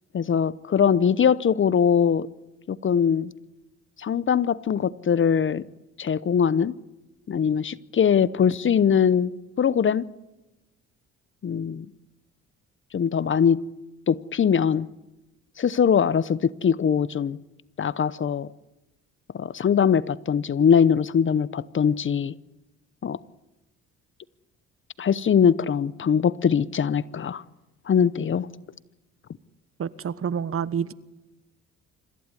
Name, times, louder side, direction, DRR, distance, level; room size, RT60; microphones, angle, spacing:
voice 1, 0.1-2.3 2.7-3.3 4.0-5.6 6.0-6.7 7.3-9.3 9.6-10.0 11.4-11.9 12.9-13.6 14.1-14.9 15.6-17.4 17.8-18.5 19.4-22.3 23.0-23.2 25.0-27.4 27.9-28.5, left 7 dB, 40° left, 0.8 m, -21 dB
voice 2, 29.8-30.9, right 7 dB, 45° right, 1.2 m, -28 dB
26.0 x 15.0 x 9.8 m
cardioid pair, 90°, 30 cm